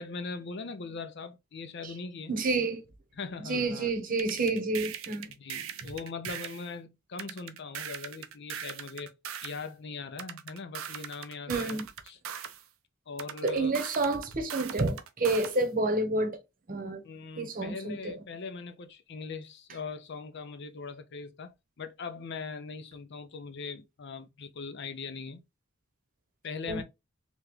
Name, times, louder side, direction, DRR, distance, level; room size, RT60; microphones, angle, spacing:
voice 1, 0.0-2.3 3.2-3.9 5.4-9.2 9.4-11.8 12.1-12.2 13.1-13.7 17.0-25.4 26.4-26.8, left 4 dB, 60° left, 0.6 m, -40 dB
voice 2, 2.3-2.8 3.4-5.3 11.5-11.9 13.4-16.4 16.7-17.0 17.4-18.1 26.7-26.8, right 2 dB, 45° right, 0.9 m, -29 dB
sound 1, 4.2-6.7 7.2-9.6 10.2-12.6 13.2-15.6, right 9 dB, 90° right, 0.6 m, -40 dB
3.3 x 3.0 x 3.5 m
head